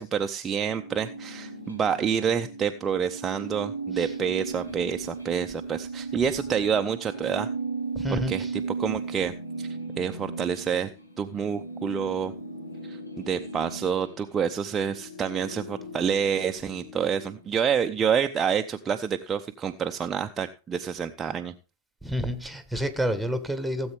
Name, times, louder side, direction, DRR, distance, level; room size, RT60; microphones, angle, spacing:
voice 1, 0.0-7.5 8.1-8.4 8.8-9.3 9.6-9.7 10.0-10.9 11.2-12.3 12.9-21.5, right 7 dB, 20° right, 0.6 m, -28 dB
sound 1, 0.7-17.9, right 3 dB, 80° left, 1.9 m, -37 dB
voice 2, 7.9-8.5 22.0-24.0, equal, ahead, 1.4 m, -29 dB
16.5 x 7.9 x 3.5 m
figure-of-eight pair, 90°, 0 cm